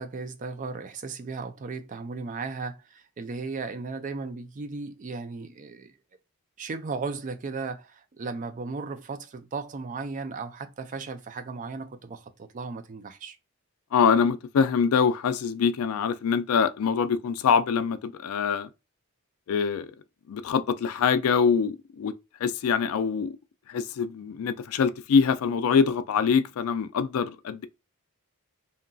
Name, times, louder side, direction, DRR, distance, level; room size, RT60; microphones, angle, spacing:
voice 1, 0.0-5.9 6.6-13.4, right 4 dB, 35° right, 0.3 m, -36 dB
voice 2, 13.9-18.7 19.5-19.9 20.3-22.1 22.4-23.3 23.7-27.7, left 6 dB, 70° left, 0.3 m, -24 dB
2.8 x 2.6 x 2.2 m
head